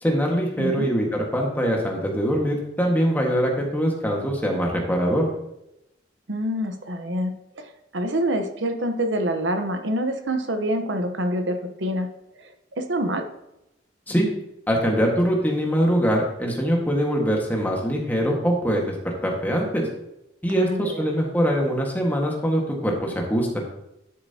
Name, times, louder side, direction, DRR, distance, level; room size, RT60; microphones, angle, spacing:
voice 1, 0.0-5.3 14.1-14.3 14.7-18.9 19.2-19.9 20.4-23.6, equal, 10° left, 0 dB, 1.7 m, -23 dB
voice 2, 0.6-0.9 6.3-12.1 12.4-13.2 20.6-21.0, equal, 70° right, 6 dB, 1.0 m, -26 dB
11.5 x 7.4 x 2.9 m, 0.85 s
head